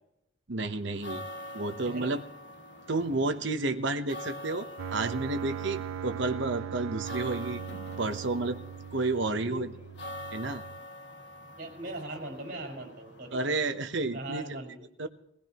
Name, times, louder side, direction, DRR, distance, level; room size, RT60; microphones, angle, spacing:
voice 1, 0.5-1.2 1.5-2.2 2.9-7.6 8.0-8.6 8.9-9.7 10.3-10.6 13.3-14.6 15.0-15.1, right 3 dB, 60° right, 8 dB, 1.0 m, -31 dB
sound 1, 0.8-14.3, left 1 dB, 55° left, 1.3 m, -46 dB
sound 2, 4.8-10.8, right 8 dB, 75° right, 0.4 m, -39 dB
voice 2, 11.6-13.4 14.1-14.8, right 1 dB, 45° right, 2 dB, 5.8 m, -39 dB
21.5 x 16.0 x 3.0 m, 0.79 s
head